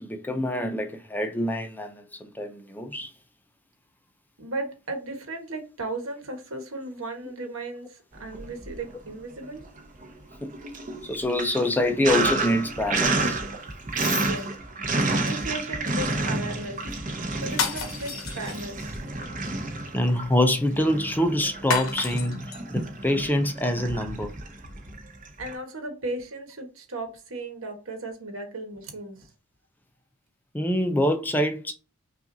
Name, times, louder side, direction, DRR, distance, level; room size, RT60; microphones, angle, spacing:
voice 1, 0.0-3.1 10.4-10.5 11.0-13.4 19.9-22.5 22.7-24.3 30.5-31.7, left 1 dB, 10° left, 0.5 m, -25 dB
voice 2, 4.4-9.6 14.1-14.5 15.1-16.8 17.4-18.9 25.4-29.3, right 2 dB, 75° right, 1.2 m, -35 dB
Sink (filling or washing), 8.2-9.1 9.4-25.5, right 2 dB, 40° right, 0.8 m, -30 dB
sound 1, 17.5-19.0 21.7-22.6, left 5 dB, 80° left, 0.9 m, -30 dB
5.6 x 2.5 x 2.6 m
head